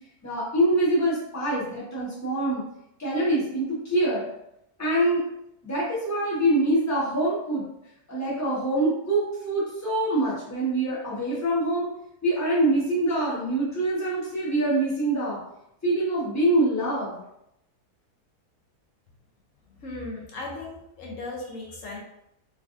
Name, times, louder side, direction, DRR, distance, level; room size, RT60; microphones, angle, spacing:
voice 1, 0.2-2.6 3.0-4.3 4.8-5.2 5.6-7.6 8.1-11.9 12.2-15.4 15.8-17.2, right 1 dB, 15° left, -8 dB, 0.9 m, -25 dB
voice 2, 19.7-22.0, left 2 dB, 65° left, -2 dB, 0.9 m, -37 dB
3.3 x 2.6 x 2.5 m, 0.82 s
omnidirectional pair, 1.7 m